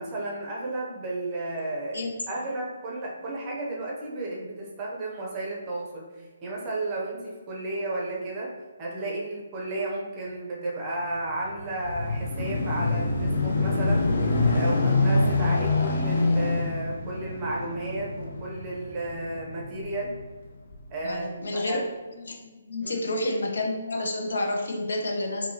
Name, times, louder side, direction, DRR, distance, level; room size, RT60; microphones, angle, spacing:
voice 1, 0.0-8.5 8.8-14.1 14.5-20.1 20.9-21.8 22.8-23.0, right 2 dB, 15° right, -3 dB, 0.6 m, -33 dB
sound 1, 11.3-20.1 20.7-20.8, left 2 dB, 55° left, 0.7 m, -26 dB
voice 2, 21.0-21.8 22.2-25.5, left 2 dB, 85° left, 1 dB, 0.9 m, -29 dB
4.6 x 2.6 x 2.8 m, 1.3 s
hypercardioid pair, 175°, 0 cm